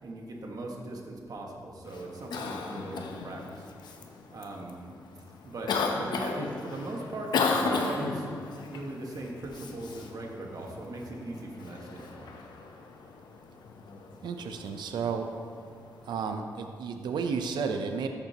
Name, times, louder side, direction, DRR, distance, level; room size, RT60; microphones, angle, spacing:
voice 1, 0.0-4.0 4.3-4.8 5.4-8.3 8.7-12.3, right 2 dB, 55° right, 0 dB, 1.4 m, -39 dB
Cough, 1.8-16.3, left 4 dB, 85° left, 0.7 m, -36 dB
voice 2, 14.2-15.3 16.1-18.1, right 5 dB, 90° right, 6 dB, 0.6 m, -32 dB
13.0 x 6.8 x 2.9 m, 2.2 s
cardioid pair, 70°, 7 cm